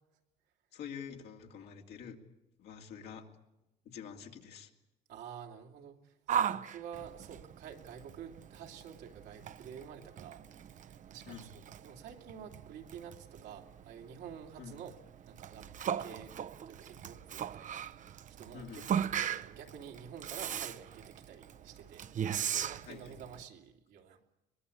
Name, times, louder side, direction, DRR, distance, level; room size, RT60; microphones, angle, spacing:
voice 1, 0.7-2.2 2.6-3.3 3.8-4.7 11.3-11.5 14.6-14.8 18.5-19.1 22.8-23.2, left 7 dB, 75° left, 2 dB, 2.7 m, -47 dB
voice 2, 5.1-15.0 15.3-16.4 16.6-18.1 18.4-24.2, right 8 dB, 80° right, 2 dB, 2.8 m, -50 dB
Yell, 6.3-23.4, right 9 dB, 50° right, 0.8 m, -39 dB
23.0 x 20.5 x 8.4 m, 0.95 s
cardioid pair, 110°, 17 cm